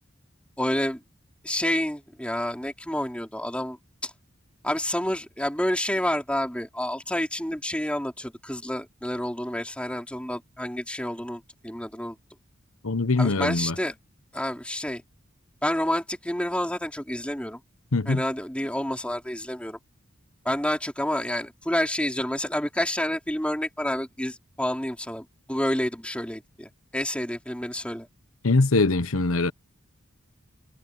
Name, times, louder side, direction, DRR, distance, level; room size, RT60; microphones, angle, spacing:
voice 1, 0.6-1.0 1.4-4.1 4.6-12.2 13.2-13.9 14.3-15.0 15.6-17.6 18.1-19.8 20.4-28.1, left 1 dB, 5° left, 4.1 m, -29 dB
voice 2, 12.8-13.7 17.9-18.2 28.4-29.5, left 3 dB, 90° left, 1.1 m, -22 dB
head